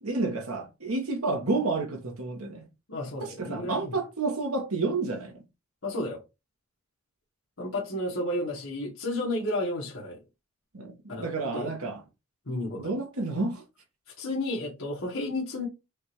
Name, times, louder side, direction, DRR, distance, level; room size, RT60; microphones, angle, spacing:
voice 1, 0.0-2.6 3.2-5.3 10.7-12.0 12.8-13.6, right 3 dB, 80° right, 1.2 m, -30 dB
voice 2, 2.9-3.9 5.8-6.2 7.6-10.2 11.1-11.7 12.5-12.9 14.2-15.7, left 1 dB, 65° left, 1.4 m, -32 dB
5.0 x 2.5 x 3.0 m
head